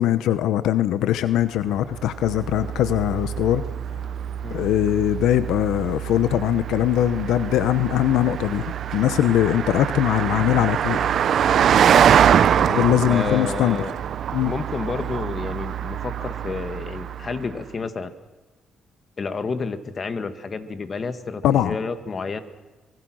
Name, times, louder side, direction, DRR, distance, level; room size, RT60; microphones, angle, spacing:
voice 1, 0.0-3.6 4.5-11.1 12.7-13.8 14.3-14.5 21.4-21.8, left 12 dB, 85° left, 13 dB, 0.9 m, -21 dB
Car passing by, 1.8-17.5, right 9 dB, 65° right, 0.7 m, -24 dB
voice 2, 12.6-13.9 14.4-18.1 19.2-22.4, left 4 dB, 40° left, 10 dB, 1.9 m, -30 dB
25.0 x 22.0 x 6.4 m, 1.2 s
cardioid pair, 90°, 0 cm